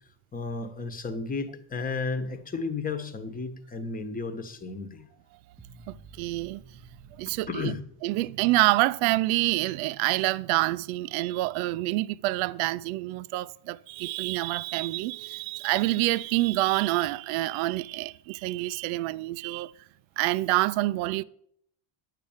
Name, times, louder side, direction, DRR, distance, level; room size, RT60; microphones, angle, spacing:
voice 1, 0.3-5.1 7.5-7.8, left 4 dB, 15° left, 1.1 m, -33 dB
sound 1, 5.6-8.7, right 3 dB, 10° right, 0.5 m, -53 dB
voice 2, 5.9-6.6 7.2-7.7 8.0-19.7 20.2-21.2, right 18 dB, 75° right, 0.6 m, -27 dB
9.9 x 7.6 x 7.1 m
cardioid pair, 140°, 48 cm